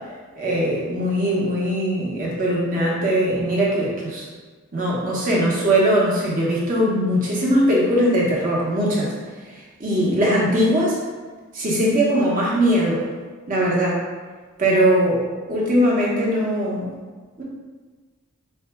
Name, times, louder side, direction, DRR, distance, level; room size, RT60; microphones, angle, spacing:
voice 1, 0.4-3.9 4.7-9.1 9.8-11.0 11.5-13.0 13.5-14.0 14.6-15.2 15.5-16.9 17.4-17.5, equal, 40° right, -5 dB, 1.1 m, -20 dB
4.6 x 2.3 x 4.4 m, 1.4 s
head